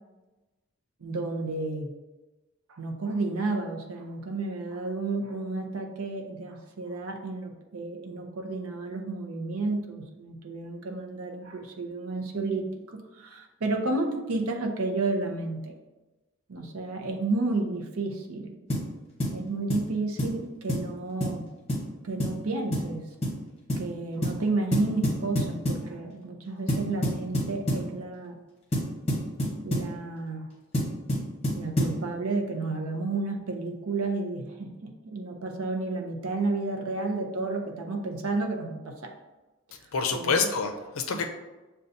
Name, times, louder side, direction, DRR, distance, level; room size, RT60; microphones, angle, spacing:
voice 1, 1.0-1.9 2.7-15.7 16.5-18.5 19.3-21.4 22.0-23.1 23.7-28.4 29.6-30.5 31.5-39.1 40.1-40.5, right 3 dB, 85° right, 3 dB, 0.6 m, -31 dB
sound 1, 18.7-18.9 19.2-19.4 19.7-19.9 20.2-20.4 20.7-20.9 21.2-21.4 21.7-21.9 22.2-22.4 22.7-22.9 23.2-23.4 23.7-23.9 24.2-24.4 24.7-25.9 26.7-27.9 28.7-29.9 30.7-32.0, equal, 30° left, 0.9 m, -27 dB
voice 2, 39.9-41.3, left 5 dB, 75° left, 5 dB, 0.5 m, -27 dB
6.7 x 2.3 x 2.6 m, 1.1 s
head